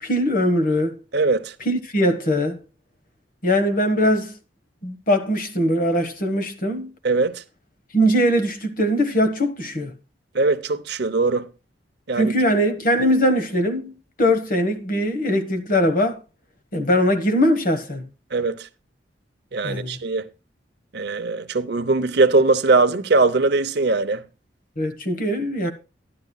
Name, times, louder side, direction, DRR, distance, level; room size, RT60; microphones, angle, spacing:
voice 1, 0.0-1.0 1.6-2.6 3.4-4.3 4.8-6.9 7.9-9.9 12.1-13.9 14.2-16.2 16.7-18.0 19.6-20.0 24.8-25.7, equal, 50° left, 1.4 m, -21 dB
voice 2, 1.1-1.5 7.0-7.4 10.3-11.5 12.1-12.3 18.3-18.7 19.5-20.3 20.9-24.2, right 3 dB, 60° right, 0.7 m, -20 dB
12.0 x 11.0 x 2.3 m
head